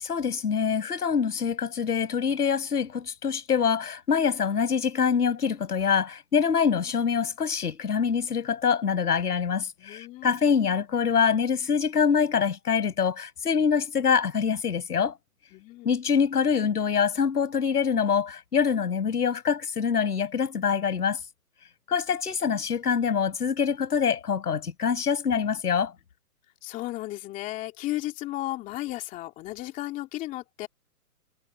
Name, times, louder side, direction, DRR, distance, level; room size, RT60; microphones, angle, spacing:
voice 1, 0.0-15.1 15.8-21.2 21.9-25.9, left 6 dB, 75° left, 7.5 m, -25 dB
voice 2, 9.8-10.4 15.5-16.0 26.6-30.7, left 16 dB, 15° left, 2.6 m, -34 dB
hypercardioid pair, 160°, 47 cm